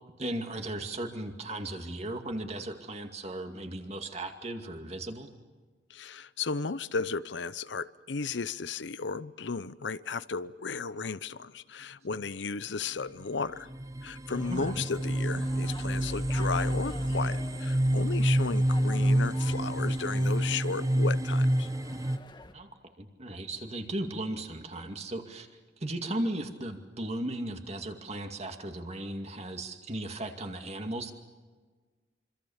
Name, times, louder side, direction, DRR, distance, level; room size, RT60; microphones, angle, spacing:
voice 1, 0.2-5.3 14.5-14.8 22.5-22.7 23.0-25.5 25.8-31.1, right 1 dB, 35° right, 2.3 m, -36 dB
voice 2, 5.9-13.7 14.0-21.7, left 4 dB, 70° left, 0.7 m, -34 dB
sound 1, 13.2-13.3 13.7-22.2, right 1 dB, 20° right, 0.7 m, -28 dB
sound 2, 14.3-22.5, left 2 dB, 25° left, 1.6 m, -48 dB
26.0 x 25.5 x 7.2 m
head